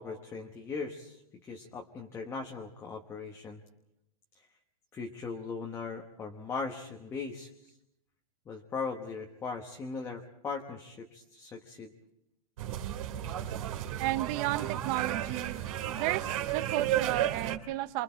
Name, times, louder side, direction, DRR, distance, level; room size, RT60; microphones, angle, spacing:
voice 1, 0.0-3.6 4.9-7.7 8.5-11.9, left 4 dB, 15° left, 2 dB, 1.1 m, -39 dB
sound 1, 12.6-17.6, right 12 dB, 55° right, 2.4 m, -33 dB
voice 2, 14.0-15.6 15.9-18.0, right 15 dB, 30° right, 13 dB, 0.9 m, -33 dB
30.0 x 25.0 x 4.5 m, 0.85 s
supercardioid pair, 160°, 20 cm